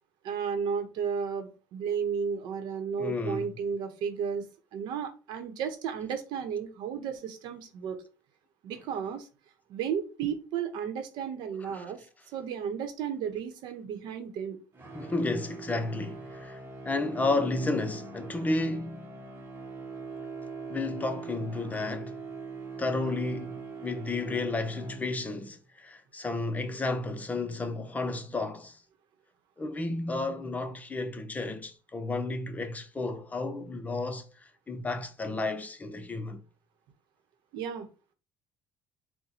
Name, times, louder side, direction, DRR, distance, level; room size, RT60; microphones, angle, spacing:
voice 1, 0.2-4.4 4.7-8.0 8.6-9.3 9.7-12.0 12.3-14.6 37.5-37.9, right 7 dB, 70° right, 0.8 m, -33 dB
voice 2, 3.0-3.5 11.6-11.9 14.9-19.1 20.7-22.2 22.8-28.8 29.6-34.3 34.7-36.4, left 2 dB, 20° left, 0.6 m, -32 dB
sound 1, 14.7-25.5, right 4 dB, 30° right, 1.0 m, -42 dB
4.2 x 2.2 x 4.0 m
cardioid pair, 105°, 8 cm